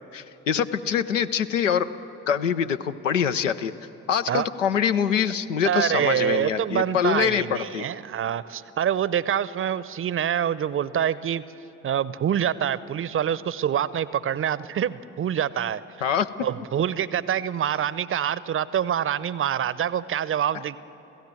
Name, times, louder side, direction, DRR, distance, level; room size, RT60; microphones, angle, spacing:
voice 1, 0.1-1.9 2.3-3.7 4.1-7.9 16.0-16.3, left 8 dB, 85° left, 10 dB, 0.6 m, -24 dB
voice 2, 5.7-11.4 11.8-15.8 16.4-20.8, right 9 dB, 35° right, 18 dB, 0.7 m, -26 dB
28.0 x 16.5 x 7.6 m, 3.0 s
figure-of-eight pair, 45°, 37 cm